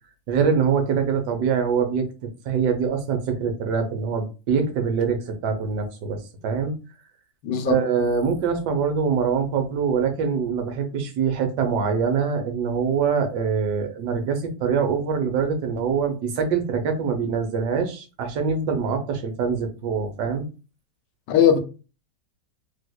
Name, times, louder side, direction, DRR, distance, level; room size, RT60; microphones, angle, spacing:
voice 1, 0.3-6.8 7.7-20.5, right 6 dB, 80° right, 1.3 m, -24 dB
voice 2, 7.4-7.8 21.3-21.6, left 8 dB, 90° left, 1.3 m, -18 dB
3.4 x 2.9 x 2.2 m
omnidirectional pair, 1.9 m